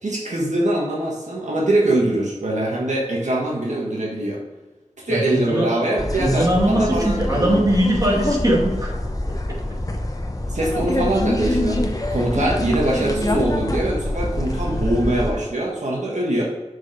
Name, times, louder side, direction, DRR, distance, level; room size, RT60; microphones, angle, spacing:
voice 1, 0.0-4.4 5.0-7.6 10.5-11.8 12.1-16.4, right 1 dB, 85° right, -3 dB, 1.5 m, -23 dB
voice 2, 5.1-5.7 6.2-8.9, right 1 dB, 30° right, -3 dB, 2.3 m, -20 dB
sound 1, 6.0-15.3, left 1 dB, 30° left, 0.9 m, -25 dB
6.5 x 4.9 x 5.0 m, 1.1 s
wide cardioid pair, 60°, 12 cm